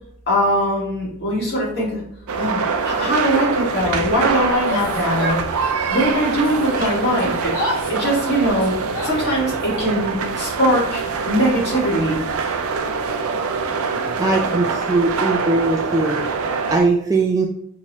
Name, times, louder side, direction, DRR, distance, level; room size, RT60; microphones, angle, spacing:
voice 1, 0.3-2.0 2.3-5.4 5.9-7.5 7.9-8.7 9.0-12.2, equal, 50° left, -6 dB, 1.9 m, -21 dB
sound 1, 2.3-16.8, right 5 dB, 80° right, 0.5 m, -24 dB
Yell, 4.6-6.0 6.3-9.8, left 1 dB, 75° left, 1.6 m, -31 dB
voice 2, 14.2-17.5, right 3 dB, 15° right, -1 dB, 0.3 m, -20 dB
5.6 x 2.9 x 3.0 m, 0.70 s
head